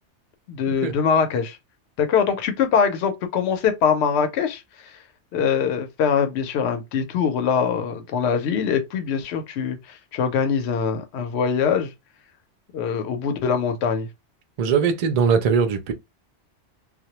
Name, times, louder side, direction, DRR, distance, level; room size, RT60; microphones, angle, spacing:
voice 1, 0.5-1.6 2.0-4.9 5.3-11.9 12.7-14.1, left 6 dB, 75° left, 0.8 m, -23 dB
voice 2, 14.6-15.9, right 6 dB, 60° right, 0.4 m, -20 dB
2.2 x 2.0 x 2.8 m
omnidirectional pair, 1.2 m